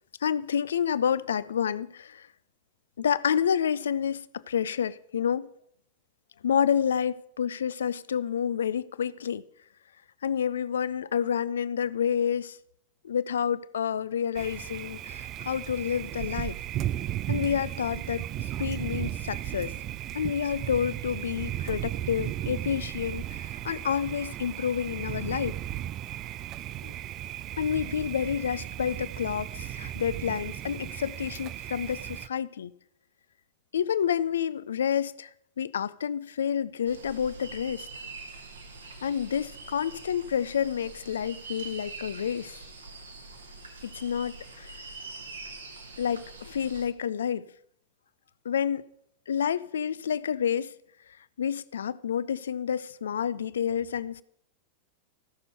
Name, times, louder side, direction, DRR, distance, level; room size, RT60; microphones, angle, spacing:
voice 1, 0.2-2.3 3.0-5.5 6.4-9.4 10.2-12.6 13.0-16.6 17.3-19.7 20.1-25.6 26.8-26.9 27.6-32.7 33.7-35.3 35.6-37.9 39.0-42.6 43.8-44.7 46.0-47.5 48.4-48.9 49.3-50.7 51.4-54.2, left 8 dB, 65° left, 0.4 m, -29 dB
Thunder, 14.3-32.3, right 13 dB, 35° right, 0.4 m, -35 dB
sound 1, 36.8-46.8, right 3 dB, 75° right, 1.7 m, -44 dB
15.0 x 6.7 x 5.6 m
figure-of-eight pair, 90°, 0 cm